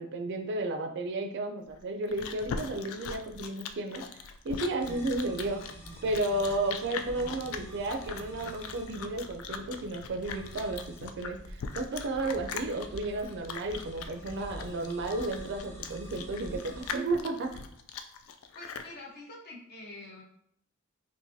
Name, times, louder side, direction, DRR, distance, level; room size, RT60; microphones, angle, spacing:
voice 1, 0.0-4.0 4.4-5.6 6.0-17.5, right 2 dB, 55° right, 5 dB, 0.4 m, -33 dB
Chewing mastication, 1.7-18.9, left 6 dB, 70° left, 0.3 m, -41 dB
sound 1, 4.8-17.0, right 1 dB, 10° left, 0.5 m, -47 dB
voice 2, 18.5-20.2, left 2 dB, 50° left, -1 dB, 0.7 m, -46 dB
3.8 x 2.5 x 2.7 m, 0.69 s
head